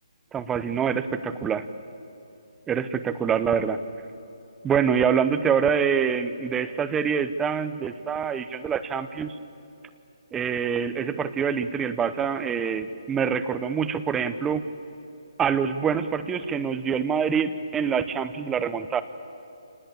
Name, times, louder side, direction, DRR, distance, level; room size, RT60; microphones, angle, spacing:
voice 1, 0.3-1.7 2.7-3.8 4.6-9.4 10.3-14.6 15.4-19.0, right 7 dB, 10° right, 11 dB, 0.8 m, -25 dB
27.5 x 19.5 x 8.7 m, 2.8 s
hypercardioid pair, 160°, 3 cm